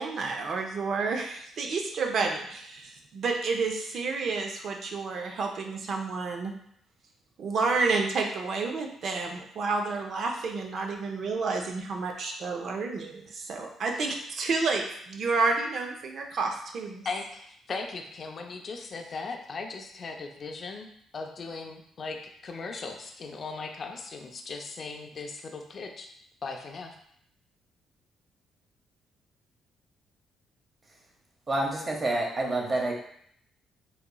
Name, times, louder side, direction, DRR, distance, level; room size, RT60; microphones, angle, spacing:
voice 1, 0.0-6.5 7.4-17.1, right 4 dB, 60° right, 2 dB, 0.5 m, -30 dB
voice 2, 17.0-26.1 26.4-26.9, left 4 dB, 45° left, 4 dB, 0.4 m, -38 dB
voice 3, 31.5-32.9, right 2 dB, 35° right, 0 dB, 0.8 m, -28 dB
4.0 x 2.9 x 2.2 m, 0.67 s
cardioid pair, 90°, 0 cm